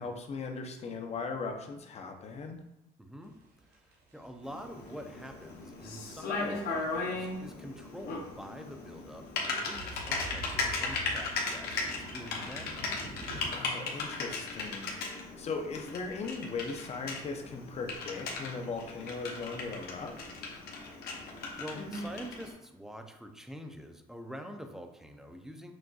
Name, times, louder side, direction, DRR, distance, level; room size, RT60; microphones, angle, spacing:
voice 1, 0.0-2.6 13.5-14.9 15.4-20.1, left 4 dB, 40° left, 4 dB, 0.6 m, -38 dB
voice 2, 3.0-3.3 3.7-12.9 21.6-25.7, equal, 5° right, 5 dB, 0.4 m, -46 dB
sound 1, 3.2-13.5, right 1 dB, 85° right, 1.0 m, -47 dB
Typing, 4.4-22.5, left 3 dB, 65° left, 0.9 m, -37 dB
6.1 x 2.5 x 2.3 m, 0.85 s
cardioid pair, 110°, 17 cm